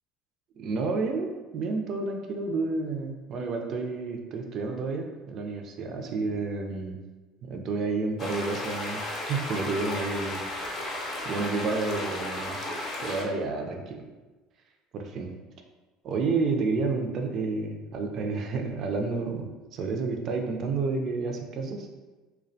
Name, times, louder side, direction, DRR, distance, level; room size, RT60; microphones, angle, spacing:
voice 1, 0.6-7.0 7.4-10.4 10.7-10.8 11.2-12.6 13.0-14.0 14.9-15.3 16.0-21.9, right 4 dB, 50° right, 3 dB, 0.3 m, -30 dB
sound 1, 8.2-13.2, left 1 dB, 45° left, 0.5 m, -34 dB
2.2 x 2.1 x 2.6 m, 1.2 s
supercardioid pair, 105°, 0 cm